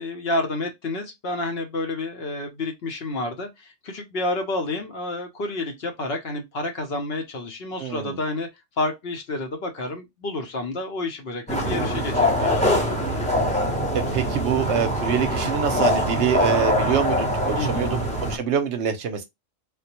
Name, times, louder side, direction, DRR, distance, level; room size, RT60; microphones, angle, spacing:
voice 1, 0.0-8.5 8.8-12.9 17.6-17.9, left 2 dB, 55° left, 0.9 m, -29 dB
voice 2, 7.8-8.2 13.9-19.2, right 7 dB, 70° right, 0.8 m, -25 dB
sound 1, 11.5-18.4, equal, 5° left, 0.6 m, -23 dB
3.4 x 2.1 x 2.8 m
omnidirectional pair, 1.3 m